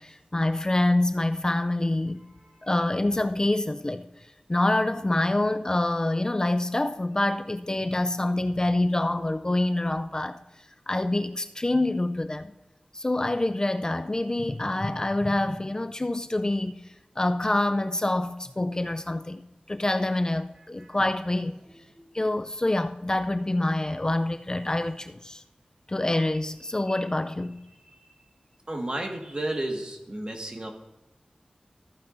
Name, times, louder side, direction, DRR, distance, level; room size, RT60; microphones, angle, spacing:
voice 1, 0.0-2.2 2.6-4.1 4.5-10.4 10.9-12.5 12.9-16.8 17.2-19.4 19.7-21.6 22.1-25.4 25.9-27.6, left 1 dB, 30° left, 0.4 m, -26 dB
voice 2, 28.7-30.7, right 1 dB, 35° right, 1.7 m, -32 dB
13.5 x 9.2 x 2.6 m
wide cardioid pair, 75°, 3 cm